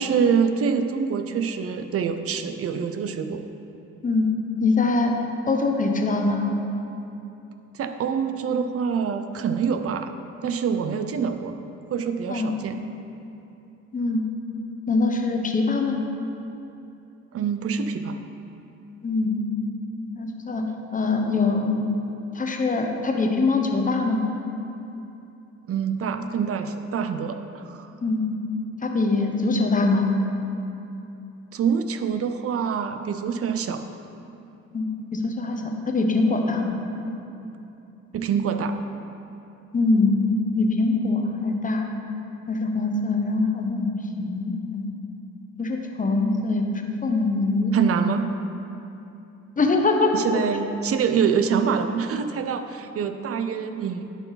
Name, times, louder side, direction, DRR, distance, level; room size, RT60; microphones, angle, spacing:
voice 1, 0.0-3.4 7.7-10.1 10.4-11.6 11.9-12.8 17.3-18.2 25.7-27.9 31.5-33.8 38.1-38.8 47.7-48.3 50.1-54.0, right 6 dB, 50° right, 8 dB, 0.5 m, -25 dB
voice 2, 4.6-5.1 5.5-6.4 12.3-12.5 13.9-14.2 14.9-16.0 19.0-19.4 20.2-20.6 20.9-21.9 22.3-24.2 28.0-28.3 28.8-30.1 34.7-36.8 39.7-40.1 40.6-41.8 42.5-43.9 44.2-44.8 45.6-47.7 49.6-50.1, left 3 dB, 25° left, 3 dB, 0.9 m, -23 dB
11.0 x 4.6 x 4.0 m, 2.9 s
cardioid pair, 90°, 30 cm